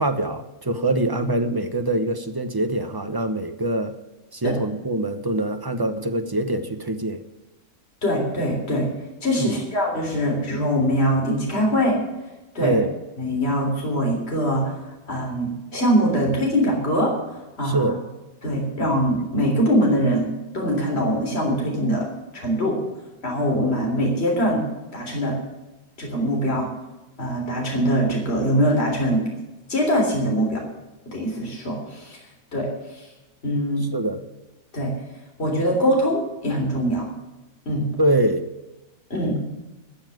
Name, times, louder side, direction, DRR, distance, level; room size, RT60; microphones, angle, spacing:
voice 1, 0.0-3.9 4.3-7.2 9.4-9.6 12.6-12.9 17.6-18.0 33.9-34.2 38.0-38.5, right 1 dB, 20° right, 8 dB, 0.7 m, -24 dB
voice 2, 8.0-8.9 9.2-12.0 12.5-12.8 13.2-17.9 18.4-20.3 20.5-22.1 22.3-22.8 23.2-24.6 24.9-25.4 26.0-26.7 27.2-29.3 29.7-30.6 31.1-32.2 32.5-33.1 33.4-33.8 34.7-34.9 35.4-37.1 37.7-37.9 39.1-39.4, equal, 40° left, 0 dB, 3.9 m, -23 dB
13.5 x 7.3 x 9.2 m, 1.1 s
omnidirectional pair, 1.6 m